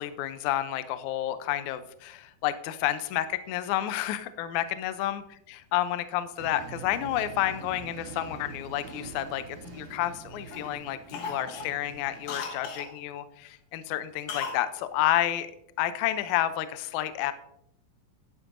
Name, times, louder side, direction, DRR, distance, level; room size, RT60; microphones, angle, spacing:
voice 1, 0.0-9.4 9.7-15.5 15.8-17.3, left 13 dB, 85° left, 12 dB, 1.6 m, -30 dB
sound 1, 6.4-12.8, right 5 dB, 70° right, 2.4 m, -45 dB
Cough, 8.9-10.1 10.5-10.7 11.1-12.9 14.3-14.6 14.9-15.0, left 5 dB, 65° left, 1.9 m, -38 dB
11.0 x 9.8 x 2.6 m, 0.76 s
omnidirectional pair, 4.1 m